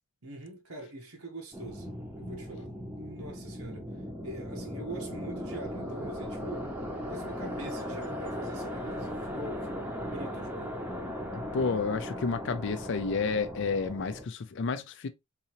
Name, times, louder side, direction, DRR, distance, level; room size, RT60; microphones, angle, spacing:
voice 1, 0.2-3.9 4.2-6.7 7.1-10.8, right 2 dB, 80° right, 1.1 m, -43 dB
sound 1, 1.5-14.2, equal, 10° right, 0.7 m, -38 dB
voice 2, 11.3-15.1, left 4 dB, 55° left, 0.4 m, -31 dB
3.7 x 2.8 x 2.9 m
head